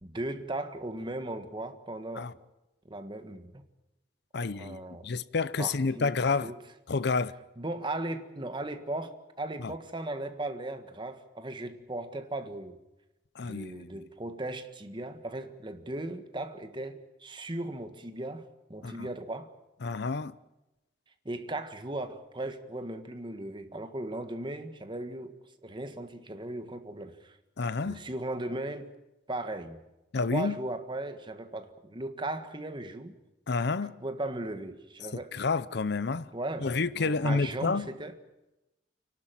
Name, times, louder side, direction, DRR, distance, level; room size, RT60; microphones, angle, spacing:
voice 1, 0.0-2.3 2.9-3.6 4.3-5.1 5.6-6.6 7.6-12.8 13.4-19.5 21.2-27.4 27.8-28.9 29.3-29.8 30.3-33.2 34.0-35.4 36.3-38.2, right 2 dB, 25° right, 1.6 m, -37 dB
voice 2, 4.3-6.5 6.9-7.3 9.6-9.7 13.4-13.9 18.8-19.1 19.8-20.3 27.6-28.0 30.1-30.5 33.5-34.0 35.1-36.3 36.6-37.9, left 4 dB, 65° left, 0.7 m, -29 dB
29.5 x 12.0 x 9.2 m
head